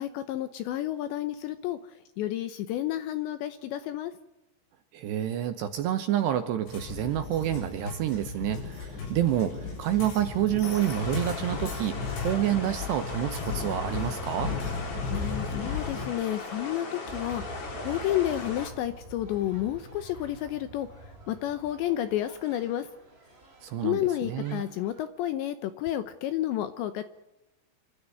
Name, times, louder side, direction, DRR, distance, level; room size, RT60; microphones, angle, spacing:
voice 1, 0.0-1.8 2.2-4.1 15.1-20.9 21.3-22.9 23.8-27.0, left 13 dB, 75° left, 11 dB, 2.8 m, -31 dB
voice 2, 4.9-14.5 23.6-24.6, right 11 dB, 75° right, 9 dB, 2.7 m, -28 dB
sound 1, 6.7-16.0, left 4 dB, 60° left, 9.6 m, -35 dB
sound 2, 10.6-18.7, left 3 dB, 35° left, 3.2 m, -38 dB
sound 3, 17.1-25.1, right 2 dB, 15° right, 2.7 m, -47 dB
27.0 x 13.0 x 9.6 m, 0.95 s
omnidirectional pair, 6.0 m